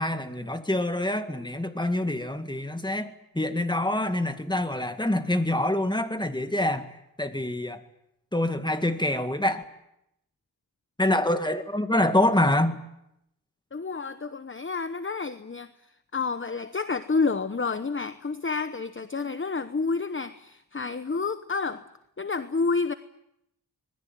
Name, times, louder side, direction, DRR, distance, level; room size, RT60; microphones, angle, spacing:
voice 1, 0.0-6.9 7.2-7.8 8.3-9.6 11.0-12.8, left 1 dB, 10° left, 8 dB, 2.0 m, -26 dB
voice 2, 13.7-15.7 16.1-21.8 22.2-22.9, left 4 dB, 30° left, 11 dB, 0.9 m, -29 dB
25.5 x 20.5 x 9.2 m, 0.81 s
wide cardioid pair, 85°, 38 cm